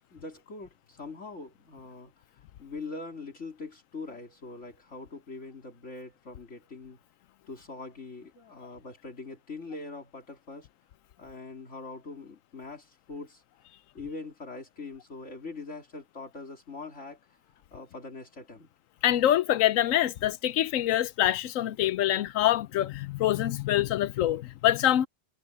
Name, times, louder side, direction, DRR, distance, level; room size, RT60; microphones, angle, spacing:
voice 1, 0.0-7.0 7.5-10.7 11.2-13.4 13.9-17.4 17.7-18.7, left 3 dB, 60° left, 3.3 m, -42 dB
voice 2, 19.0-25.1, left 12 dB, 85° left, 1.0 m, -25 dB
omnidirectional pair, 1.4 m